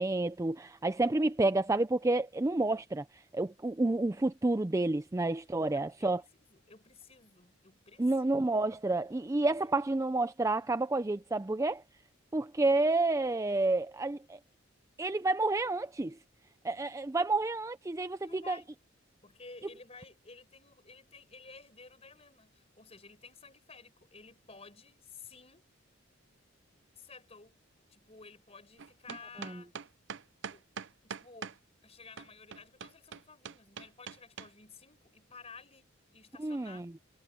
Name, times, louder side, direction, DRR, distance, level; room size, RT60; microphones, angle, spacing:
voice 1, 0.0-3.0 3.3-6.2 8.0-11.8 12.3-14.4 15.0-16.2 16.6-18.6 36.4-36.8, right 2 dB, 15° right, 0.4 m, -29 dB
voice 2, 5.5-8.3 9.8-9.9 18.2-18.7 19.2-25.7 27.0-27.6 27.9-29.7 30.5-30.7 31.0-31.5 31.8-36.9, left 4 dB, 30° left, 5.3 m, -53 dB
sound 1, 28.8-31.6 32.2-34.5, right 6 dB, 60° right, 0.6 m, -42 dB
head